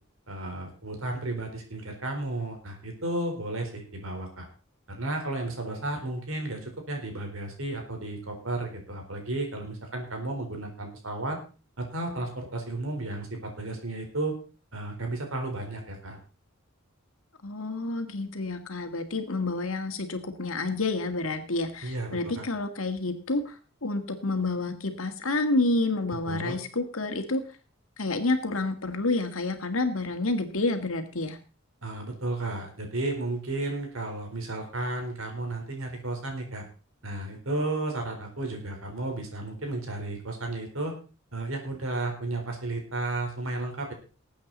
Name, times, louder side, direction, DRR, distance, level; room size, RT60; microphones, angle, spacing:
voice 1, 0.3-4.5 4.9-11.4 11.8-14.3 14.7-16.2 21.8-22.5 26.2-26.6 31.8-36.6 37.0-40.9 41.3-43.9, right 2 dB, 75° right, 3 dB, 4.2 m, -33 dB
voice 2, 17.4-27.4 28.0-31.4, left 2 dB, 80° left, 7 dB, 1.9 m, -29 dB
19.5 x 8.6 x 4.1 m, 0.35 s
head